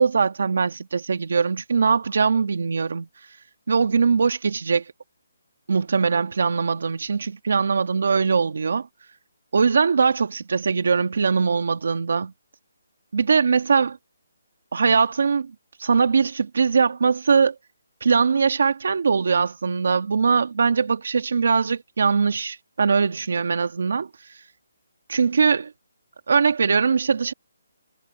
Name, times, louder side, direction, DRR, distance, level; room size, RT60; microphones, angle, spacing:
voice 1, 0.0-3.1 3.7-4.8 5.7-8.9 9.5-12.3 13.1-14.0 14.7-15.5 15.8-17.6 18.0-24.1 25.1-25.7 26.3-27.3, right 5 dB, 55° right, 1.8 m, -21 dB
hypercardioid pair, 180°, 0 cm